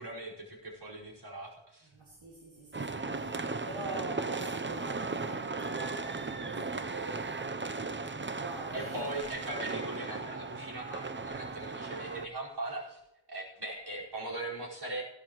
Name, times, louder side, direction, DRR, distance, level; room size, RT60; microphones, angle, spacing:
voice 1, 0.0-1.9 8.7-13.0 13.3-15.0, right 2 dB, 60° right, 5.0 m, -40 dB
voice 2, 1.9-7.6 8.4-9.2, right 2 dB, 85° right, 2.2 m, -45 dB
sound 1, 2.7-12.3, right 3 dB, 25° right, 0.7 m, -37 dB
16.0 x 12.5 x 3.1 m
wide cardioid pair, 55°, 44 cm